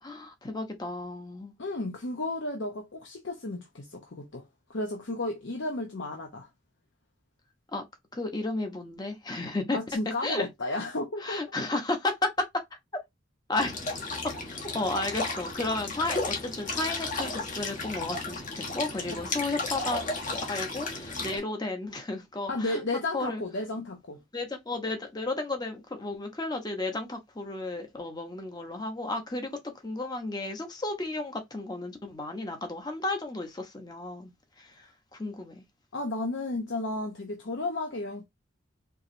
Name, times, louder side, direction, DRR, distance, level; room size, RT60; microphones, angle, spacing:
voice 1, 0.0-1.6 7.7-7.8 8.1-9.8 10.2-10.5 11.2-12.3 12.5-12.6 13.5-13.8 14.7-20.1 20.5-22.8 23.1-23.4 24.3-34.3 34.6-35.6, left 2 dB, 20° left, 0.9 m, -33 dB
voice 2, 1.6-4.4 4.7-6.5 9.7-11.4 19.1-19.2 22.5-24.2 35.9-38.2, left 2 dB, 70° left, 0.8 m, -33 dB
sound 1, 13.6-21.4, left 3 dB, 40° left, 1.2 m, -34 dB
4.7 x 3.0 x 2.6 m
head